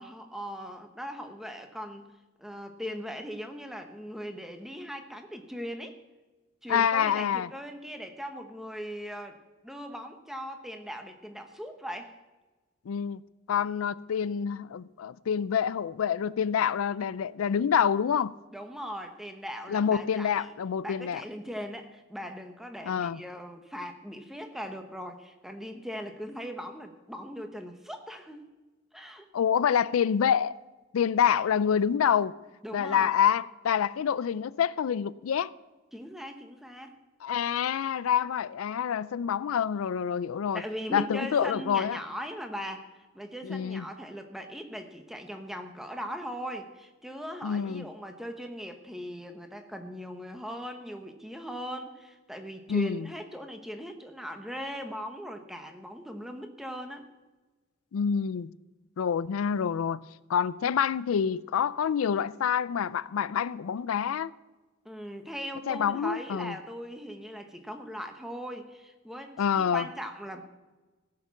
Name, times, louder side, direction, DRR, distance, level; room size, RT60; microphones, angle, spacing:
voice 1, 0.0-2.1 2.4-6.0 6.6-9.4 9.6-12.1 18.5-20.5 20.8-28.4 28.9-29.2 32.6-33.2 35.9-36.9 40.5-57.1 64.8-69.4 69.7-70.4, equal, ahead, 1.0 m, -39 dB
voice 2, 6.7-7.5 12.9-13.2 13.5-18.3 19.7-21.2 22.8-23.2 29.3-30.6 30.9-32.3 32.7-35.5 37.2-40.6 40.9-42.0 43.4-43.8 47.4-47.9 52.7-53.1 57.9-58.5 59.0-60.0 60.3-64.3 65.7-66.5 69.4-69.9, left 8 dB, 90° left, 0.4 m, -27 dB
15.5 x 6.7 x 7.1 m
head